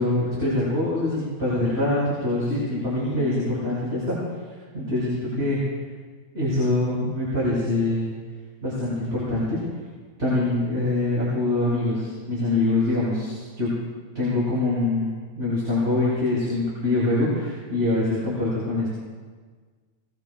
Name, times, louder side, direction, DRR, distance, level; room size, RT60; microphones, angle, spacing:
voice 1, 0.0-4.2 4.7-5.6 6.3-8.0 8.6-9.6 10.2-13.7 14.1-18.9, left 2 dB, 20° right, -10 dB, 6.4 m, -24 dB
22.5 x 21.5 x 2.4 m, 1.5 s
omnidirectional pair, 3.5 m